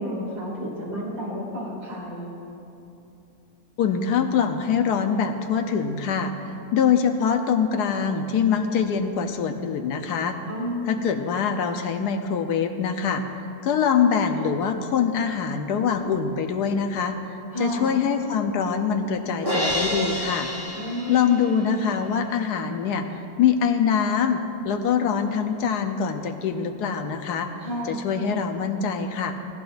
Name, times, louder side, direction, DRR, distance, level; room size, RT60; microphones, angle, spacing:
voice 1, 0.0-2.3 10.5-11.0 17.5-17.9 20.8-21.4 27.6-28.1, equal, 60° right, -6 dB, 3.0 m, -31 dB
voice 2, 3.8-6.3 6.7-10.4 10.9-13.2 13.6-17.2 17.6-20.5 21.1-24.4 24.6-27.5 27.8-29.3, left 7 dB, 85° left, 6 dB, 1.3 m, -24 dB
Crash cymbal, 19.4-21.7, equal, 15° left, 1.4 m, -28 dB
19.5 x 14.0 x 2.6 m, 2.8 s
omnidirectional pair, 1.7 m